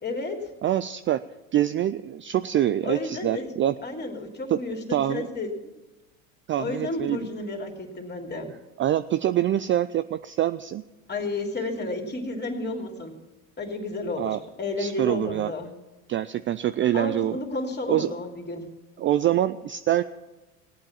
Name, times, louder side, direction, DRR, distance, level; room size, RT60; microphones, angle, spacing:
voice 1, 0.0-0.5 2.8-3.5 3.8-5.7 6.6-8.5 11.1-13.1 13.6-15.7 16.9-18.6, left 2 dB, 25° left, 3 dB, 3.0 m, -32 dB
voice 2, 0.6-1.2 1.5-3.7 4.5-4.6 4.9-5.3 6.5-7.2 8.8-10.8 14.2-14.4 14.8-15.5 16.1-17.4 17.9-18.1 19.0-20.0, right 12 dB, 30° right, 12 dB, 0.4 m, -25 dB
17.5 x 8.8 x 7.2 m, 1.1 s
hypercardioid pair, 75°, 42 cm